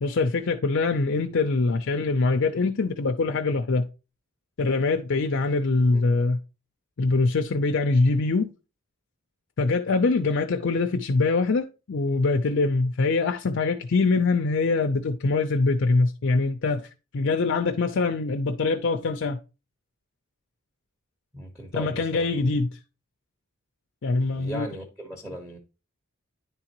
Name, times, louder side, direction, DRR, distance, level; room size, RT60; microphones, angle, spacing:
voice 1, 0.0-3.9 4.6-6.4 7.0-8.5 9.6-16.8 17.1-19.4 21.7-22.7 24.0-24.7, left 3 dB, 60° left, 0.5 m, -23 dB
voice 2, 21.3-22.6 24.3-25.6, equal, 5° right, 1.0 m, -38 dB
10.0 x 3.7 x 2.9 m
head